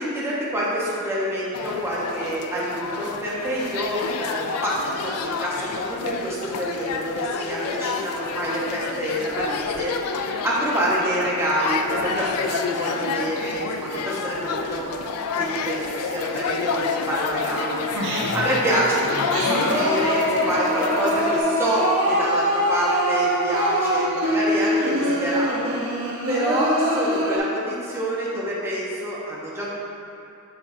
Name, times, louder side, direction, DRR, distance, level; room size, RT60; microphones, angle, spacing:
voice 1, 0.0-4.7 5.0-9.9 10.4-14.9 15.4-17.8 18.3-25.8 26.3-29.7, right 1 dB, 10° right, -7 dB, 1.1 m, -27 dB
sound 1, 1.5-21.4, left 5 dB, 80° left, 0.4 m, -29 dB
Singing, 17.9-18.5 19.0-27.4, equal, 80° right, 1.2 m, -23 dB
6.8 x 5.9 x 2.7 m, 2.7 s
head